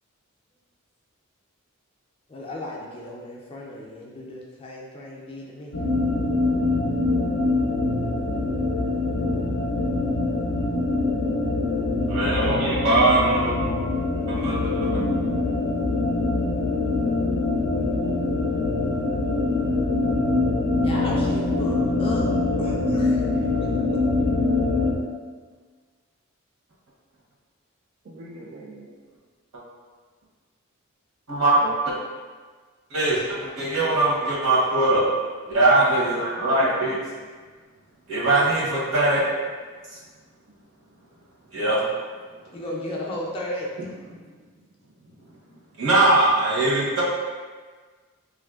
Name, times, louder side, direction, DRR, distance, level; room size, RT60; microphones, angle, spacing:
voice 1, 2.3-5.7 20.8-22.3 22.6-24.0 42.5-43.7, left 1 dB, 25° left, -3 dB, 0.4 m, -35 dB
sound 1, 5.7-25.0, left 2 dB, 85° left, 0.4 m, -24 dB
voice 2, 12.1-13.6 14.3-14.6 31.3-31.9 32.9-35.0 35.5-37.0 38.1-39.2 41.5-41.8 45.8-47.0, right 2 dB, 75° right, -6 dB, 0.8 m, -21 dB
voice 3, 14.4-15.8 28.0-28.9, right 3 dB, 45° right, -6 dB, 0.4 m, -40 dB
3.0 x 2.5 x 2.3 m, 1.5 s
head